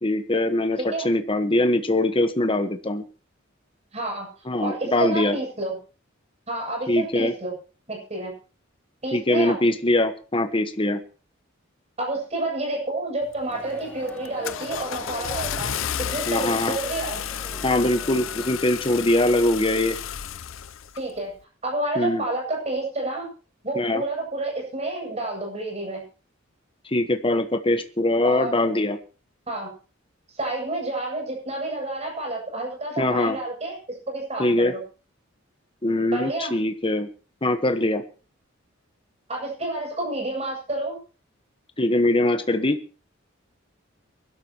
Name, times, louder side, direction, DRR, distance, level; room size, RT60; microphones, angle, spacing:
voice 1, 0.0-3.0 4.5-5.4 6.9-7.3 9.1-11.0 16.3-16.8 17.6-20.0 21.9-22.2 23.7-24.0 26.9-29.0 33.0-33.4 34.4-34.7 35.8-37.1 37.4-38.0 41.8-42.8, left 1 dB, 25° left, 8 dB, 1.3 m, -22 dB
voice 2, 0.8-1.1 3.9-4.3 4.6-5.8 6.5-7.6 7.9-8.3 9.0-9.6 12.0-15.7 16.0-17.3 20.9-21.3 21.6-23.3 23.6-26.0 28.2-28.7 29.5-29.7 30.3-33.8 34.1-34.8 36.1-36.5 39.3-41.0, right 2 dB, 35° right, 0 dB, 8.0 m, -29 dB
Car / Engine starting, 13.3-13.6 14.1-21.0, left 9 dB, 90° left, 0.6 m, -32 dB
sound 1, 13.5-18.5, equal, 10° left, 3.4 m, -42 dB
23.5 x 12.5 x 3.1 m, 0.36 s
head